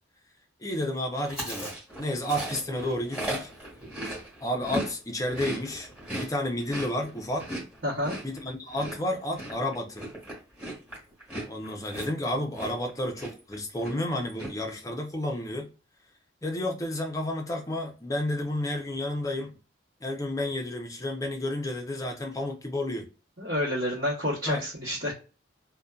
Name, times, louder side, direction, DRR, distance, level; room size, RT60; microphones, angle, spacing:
voice 1, 0.6-1.7 2.0-3.6 4.4-5.9 6.1-7.5 8.2-10.1 11.4-15.7 16.4-19.6 20.0-23.1 24.5-24.6, left 1 dB, 20° left, 0.5 m, -31 dB
Chewing mastication, 1.2-4.9 5.2-12.9 13.2-13.5 13.8-14.5, right 1 dB, 5° right, 1.2 m, -37 dB
voice 2, 7.8-8.2 23.4-25.1, left 1 dB, 55° right, 1.0 m, -29 dB
2.5 x 2.2 x 2.3 m
head